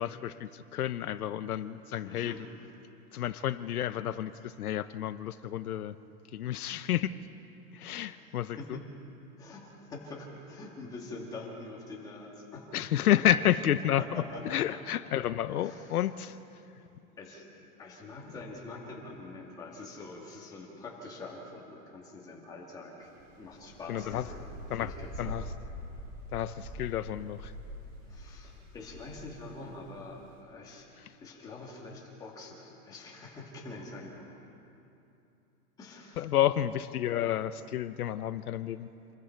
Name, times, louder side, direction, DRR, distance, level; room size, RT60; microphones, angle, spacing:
voice 1, 0.0-2.4 3.1-5.9 6.3-7.1 7.7-8.8 12.7-16.4 23.9-24.3 24.7-24.9 25.2-25.4 26.3-27.5 36.2-38.9, left 11 dB, 75° left, 12 dB, 0.9 m, -30 dB
voice 2, 2.0-2.4 7.7-8.1 8.6-8.8 9.4-12.7 14.0-14.8 15.6-16.0 17.2-17.5 17.8-23.1 23.4-25.5 28.1-30.9 31.2-34.4 35.8-36.3, left 2 dB, 10° left, -2 dB, 2.1 m, -45 dB
sound 1, 23.0-30.4, equal, 20° right, 4.4 m, -45 dB
28.0 x 21.5 x 4.6 m, 2.8 s
supercardioid pair, 180°, 45 cm